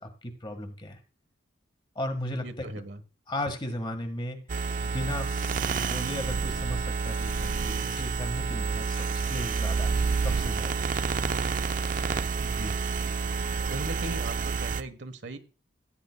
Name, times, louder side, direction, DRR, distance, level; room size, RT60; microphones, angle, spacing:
voice 1, 0.0-1.0 1.9-2.6 3.3-4.4 4.8-10.9, left 1 dB, 25° left, 7 dB, 1.5 m, -36 dB
voice 2, 2.4-3.0 12.4-12.8 13.7-15.4, right 2 dB, 70° right, 10 dB, 1.2 m, -38 dB
sound 1, 4.5-14.8, right 5 dB, 45° right, 0.4 m, -29 dB
Tick-tock, 7.0-7.1 7.9-8.1 8.9-9.1 9.3-9.4 9.7-10.1 10.9-11.3 11.9-12.0 12.5-12.6 12.9-13.0, left 5 dB, 60° left, 1.9 m, -50 dB
15.5 x 9.4 x 2.2 m, 0.35 s
head